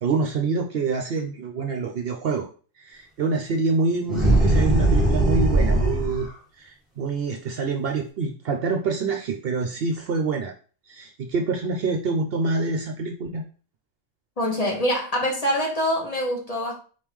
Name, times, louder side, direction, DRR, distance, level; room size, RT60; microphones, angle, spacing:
voice 1, 0.0-2.5 2.8-6.3 6.6-10.5 10.9-13.4, right 4 dB, 60° right, 3 dB, 0.7 m, -26 dB
sound 1, 4.1-6.3, right 1 dB, ahead, 1.4 m, -20 dB
voice 2, 14.4-16.7, equal, 35° left, -1 dB, 1.0 m, -24 dB
4.6 x 3.6 x 3.1 m, 0.39 s
omnidirectional pair, 1.3 m